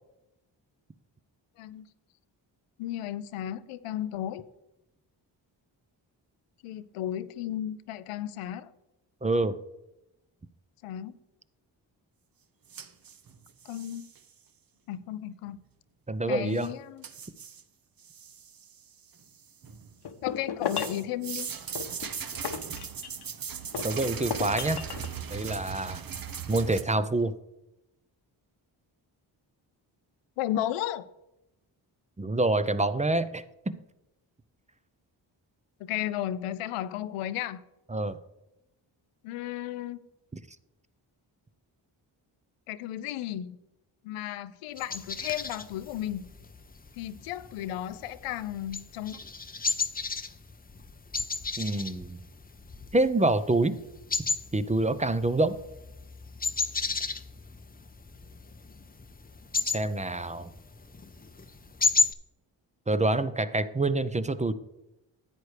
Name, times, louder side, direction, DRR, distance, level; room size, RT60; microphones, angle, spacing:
voice 1, 2.8-4.5 6.6-8.7 10.8-11.2 13.6-14.1 14.9-15.6 16.3-17.1 20.2-21.5 30.4-31.1 35.8-37.6 39.2-40.0 42.7-43.6 44.0-46.3 46.9-49.2, left 12 dB, 85° left, 15 dB, 0.6 m, -34 dB
voice 2, 9.2-9.6 16.1-16.7 23.8-24.8 25.3-26.0 26.5-27.3 32.2-33.8 37.9-38.2 51.6-52.2 52.9-53.7 54.5-55.5 59.7-60.5 62.9-64.5, right 2 dB, 15° right, 13 dB, 0.6 m, -26 dB
sound 1, 12.7-14.2 16.6-16.7 17.0-17.6 18.0-18.8 19.2-20.0 20.6-26.8, right 7 dB, 45° right, 0.9 m, -39 dB
sound 2, 20.0-21.1 21.8-23.3 23.7-25.1, left 7 dB, 50° left, 0.9 m, -35 dB
sound 3, 44.8-62.1, left 4 dB, 20° left, 0.7 m, -34 dB
10.5 x 8.2 x 3.3 m, 0.91 s
supercardioid pair, 45°, 50 cm